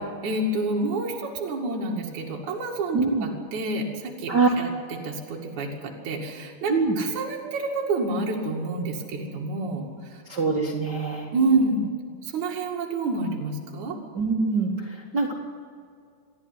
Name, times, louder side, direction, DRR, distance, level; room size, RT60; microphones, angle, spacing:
voice 1, 0.2-10.2 11.3-11.9 12.2-14.0, right 2 dB, 55° right, -1 dB, 3.5 m, -28 dB
voice 2, 2.9-3.3 4.3-4.5 6.7-7.0 10.3-11.3 14.1-15.3, right 4 dB, 40° right, -1 dB, 1.8 m, -24 dB
29.0 x 11.5 x 9.8 m, 2.2 s
omnidirectional pair, 4.1 m